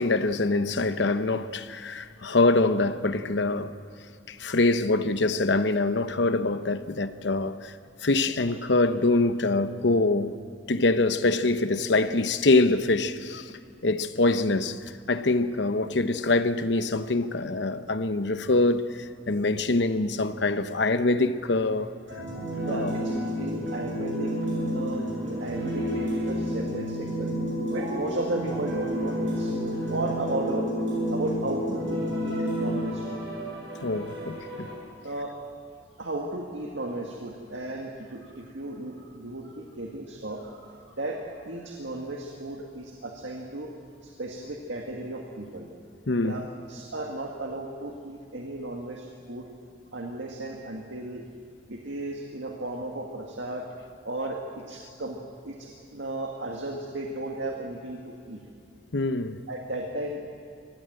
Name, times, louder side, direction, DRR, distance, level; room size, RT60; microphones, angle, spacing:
voice 1, 0.0-3.7 4.3-7.7 8.0-10.4 10.7-13.5 13.8-21.9 22.7-22.9 33.8-34.7 46.1-46.4 58.9-59.4, left 2 dB, 65° left, 0.9 m, -24 dB
sound 1, 22.1-34.7, equal, 70° right, 7.9 m, -30 dB
voice 2, 22.6-24.3 24.6-27.3 27.7-30.7 31.1-33.2 35.0-35.3 36.0-43.7 44.0-45.7 46.2-46.4 46.7-49.5 49.9-51.2 51.7-53.7 54.1-55.2 55.4-58.4 59.5-60.2, right 2 dB, 85° right, 1.9 m, -35 dB
24.0 x 18.0 x 7.7 m
head